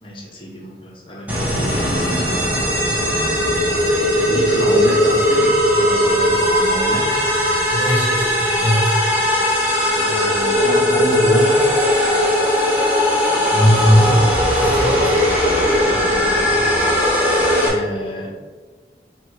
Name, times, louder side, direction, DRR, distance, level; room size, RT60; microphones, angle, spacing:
voice 1, 0.0-2.8 4.3-7.3 10.0-11.7 15.9-16.7 17.6-18.3, equal, 30° left, -1 dB, 0.7 m, -29 dB
sound 1, 1.3-17.7, equal, 10° right, 0.7 m, -18 dB
voice 2, 7.7-8.9 13.5-14.3 14.5-15.1, equal, 10° left, -4 dB, 1.1 m, -18 dB
5.3 x 2.2 x 3.9 m, 1.4 s
head